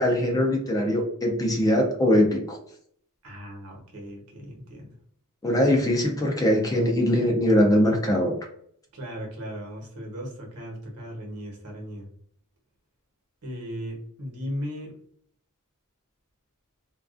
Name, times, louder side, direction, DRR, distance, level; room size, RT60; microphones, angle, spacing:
voice 1, 0.0-2.6 5.4-8.4, left 1 dB, 15° left, 1 dB, 0.4 m, -22 dB
voice 2, 3.2-5.0 8.9-12.1 13.4-15.0, equal, 75° right, -1 dB, 0.9 m, -37 dB
2.3 x 2.3 x 2.4 m, 0.64 s
head